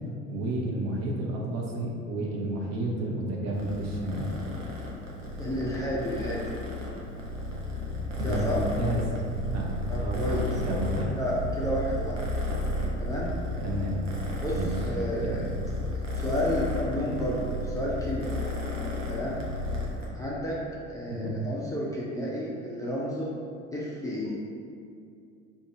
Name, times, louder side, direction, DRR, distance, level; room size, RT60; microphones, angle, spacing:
voice 1, 0.3-4.3 8.2-9.0 9.5-11.2 13.6-14.1 14.5-14.7 15.2-15.4 21.1-21.3, right 1 dB, 45° right, -2 dB, 0.8 m, -31 dB
Purr, 3.5-20.1, left 1 dB, 90° right, 0.6 m, -33 dB
voice 2, 5.4-6.5 8.2-8.6 9.9-10.5 11.1-12.2 13.0-13.3 14.4-15.5 16.2-18.4 19.1-19.4 20.1-20.6 20.9-23.3 23.7-24.4, left 1 dB, 10° left, -7 dB, 0.5 m, -31 dB
2.6 x 2.5 x 4.2 m, 2.4 s
figure-of-eight pair, 65°, 37 cm